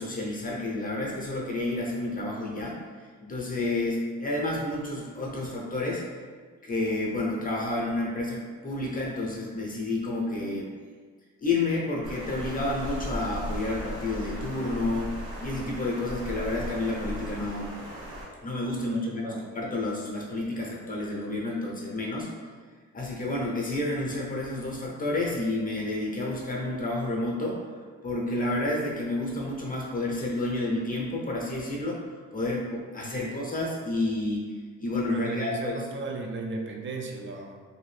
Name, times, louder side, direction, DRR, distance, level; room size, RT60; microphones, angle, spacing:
voice 1, 0.0-2.8 3.2-6.1 6.6-10.7 11.4-17.8 18.4-19.2 19.5-22.3 22.9-27.6 28.0-32.0 32.3-35.8, left 2 dB, 30° left, -2 dB, 0.7 m, -30 dB
Water, 12.0-18.2, equal, 75° right, 1.1 m, -37 dB
voice 2, 18.8-19.6 33.2-33.4 35.1-37.6, right 3 dB, 40° right, 1 dB, 0.5 m, -36 dB
2.7 x 2.5 x 3.2 m, 1.6 s
cardioid pair, 90°, 30 cm